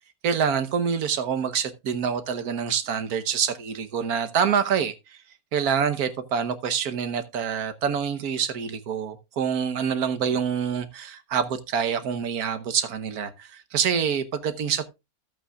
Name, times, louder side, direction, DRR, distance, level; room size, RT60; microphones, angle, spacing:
voice 1, 0.2-5.2 5.5-14.9, right 7 dB, 85° right, 1.5 m, -26 dB
14.0 x 8.1 x 2.3 m
omnidirectional pair, 1.6 m